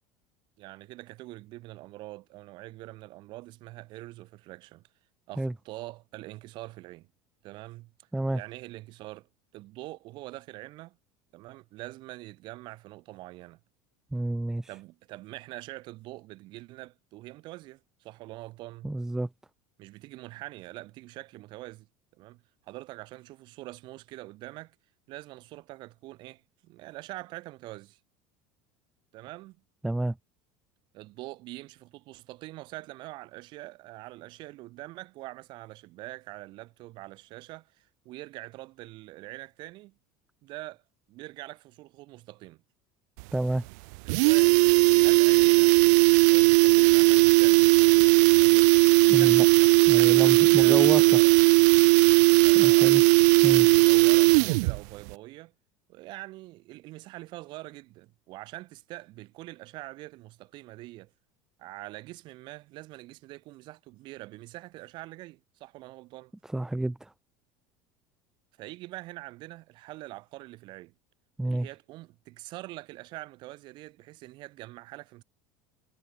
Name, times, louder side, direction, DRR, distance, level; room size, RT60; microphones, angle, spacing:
voice 1, 0.6-4.8 5.3-7.1 7.4-7.9 8.3-11.0 11.3-13.6 14.7-19.0 19.8-21.9 22.1-24.7 25.1-28.0 29.1-29.6 30.9-39.9 40.4-40.8 41.1-42.6 44.0-44.7 44.9-45.8 46.3-48.7 49.2-49.3 49.9-51.4 52.3-53.0 53.4-55.5 55.9-61.1 61.6-66.3 68.6-70.9 71.4-75.2, right 19 dB, 55° right, 6.6 m, -44 dB
voice 2, 14.1-14.7 18.8-19.3 29.8-30.2 43.3-43.6 49.1-49.5 49.9-51.0 52.5-53.0 53.4-53.7 66.5-67.1 71.4-71.7, right 1 dB, 5° right, 1.1 m, -29 dB
sound 1, 43.2-43.3 43.6-43.7 43.9-54.8 55.1-55.2, right 31 dB, 75° right, 0.7 m, -18 dB
supercardioid pair, 135°, 9 cm